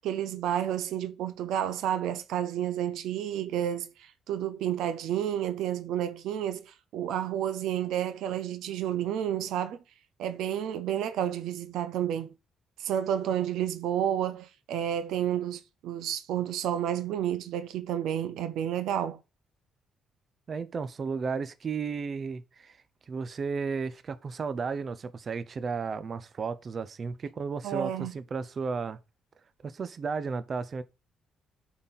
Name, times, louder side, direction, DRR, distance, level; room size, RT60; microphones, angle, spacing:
voice 1, 0.0-9.8 10.2-12.3 12.8-19.2 27.6-28.1, right 10 dB, 85° right, 0.6 m, -30 dB
voice 2, 20.5-22.8 23.1-29.0 29.6-30.8, right 5 dB, 45° right, 0.6 m, -33 dB
9.5 x 4.1 x 4.1 m
cardioid pair, 90°, 0 cm